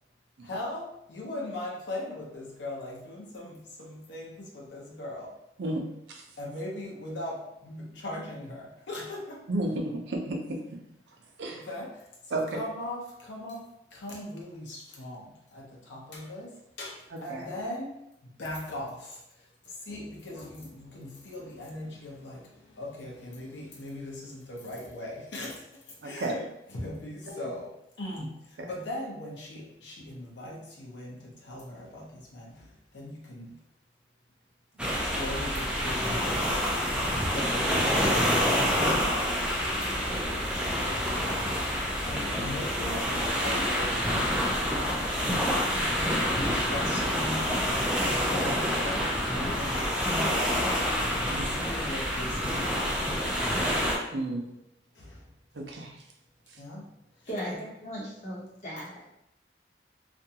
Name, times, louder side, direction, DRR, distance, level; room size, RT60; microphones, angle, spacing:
voice 1, 0.4-5.4 6.4-9.4 11.5-17.9 18.2-33.6 34.9-36.6 37.2-38.9 39.8-39.9 42.0-44.6 45.9-47.6 48.0-50.7 51.1-53.1 54.9-55.3 56.6-57.6, left 1 dB, 80° left, -3 dB, 0.7 m, -39 dB
voice 2, 5.6-6.2 9.5-10.8 11.4-11.7 12.3-12.4 17.1-17.5 26.0-26.3 28.6-28.7 45.2-45.7 51.3-51.5 54.1-54.6 55.5-56.0 56.5-56.6, right 2 dB, 70° right, 1 dB, 0.5 m, -33 dB
sound 1, 34.8-53.9, equal, 5° right, 0.4 m, -27 dB
voice 3, 57.3-59.0, equal, 40° left, -7 dB, 0.9 m, -37 dB
2.5 x 2.2 x 2.8 m, 0.81 s
head